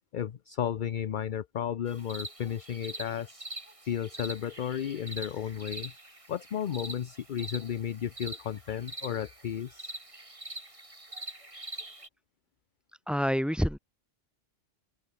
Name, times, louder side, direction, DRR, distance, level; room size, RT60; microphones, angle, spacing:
voice 1, 0.1-3.5 3.8-5.9 6.3-9.9, left 9 dB, 50° left, 0.7 m, -33 dB
sound 1, 1.9-12.1, right 2 dB, 25° right, 2.7 m, -44 dB
voice 2, 13.1-13.8, equal, ahead, 4.0 m, -27 dB
open air
omnidirectional pair, 1.3 m